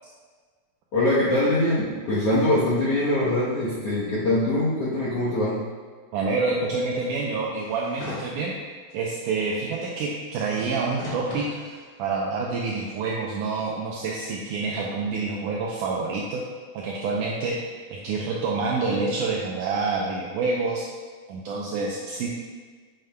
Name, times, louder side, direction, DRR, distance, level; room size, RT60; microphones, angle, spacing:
voice 1, 0.9-5.6, left 1 dB, 70° left, -8 dB, 1.4 m, -23 dB
voice 2, 6.1-8.5 8.9-11.5 12.0-16.4 16.7-17.6 17.9-20.9 21.3-22.3, right 4 dB, 80° right, -2 dB, 1.8 m, -27 dB
sound 1, 7.6-8.3 8.9-9.0 10.3-11.8 12.5-12.6, left 2 dB, 50° left, 1.9 m, -38 dB
9.2 x 6.6 x 2.2 m, 1.5 s
omnidirectional pair, 4.3 m